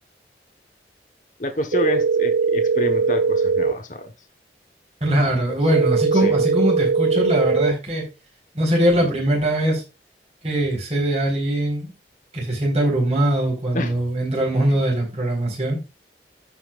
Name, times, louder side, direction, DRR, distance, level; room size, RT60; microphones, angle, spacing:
voice 1, 1.4-4.1 5.5-5.6 6.1-6.3 13.7-14.0 14.6-14.8, left 1 dB, 45° left, 1.2 m, -28 dB
sound 1, 1.7-3.7 5.7-7.7, right 4 dB, 80° right, 0.9 m, -20 dB
voice 2, 5.0-8.0 8.5-9.8 10.4-11.9 12.3-15.8, right 1 dB, 35° right, 4.4 m, -21 dB
15.0 x 5.7 x 2.5 m
head